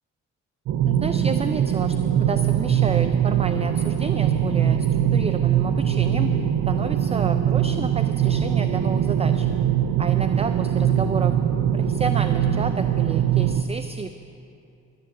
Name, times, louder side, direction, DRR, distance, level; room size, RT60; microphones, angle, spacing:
sound 1, 0.7-13.6, right 9 dB, 65° right, 0.6 m, -22 dB
voice 1, 0.8-6.4 6.7-9.5 10.0-11.4 11.7-14.2, right 5 dB, 20° right, 9 dB, 0.5 m, -30 dB
11.5 x 11.0 x 7.2 m, 2.6 s
cardioid pair, 90°, 30 cm